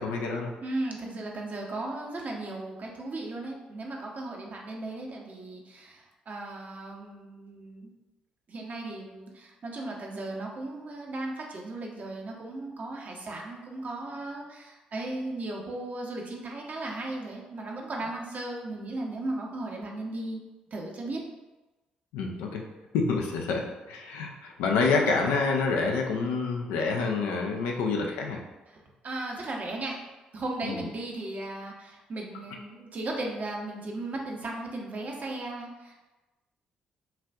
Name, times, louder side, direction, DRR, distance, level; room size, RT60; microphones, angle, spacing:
voice 1, 0.0-0.5 22.1-22.6 22.9-23.6 23.9-28.4 30.6-30.8, left 4 dB, 75° left, 1 dB, 0.5 m, -27 dB
voice 2, 0.6-7.9 8.5-20.4 20.7-21.2 27.5-27.6 28.7-30.0 30.3-36.0, right 2 dB, 45° right, 0 dB, 0.8 m, -36 dB
5.6 x 2.4 x 2.3 m, 1.1 s
hypercardioid pair, 45°, 4 cm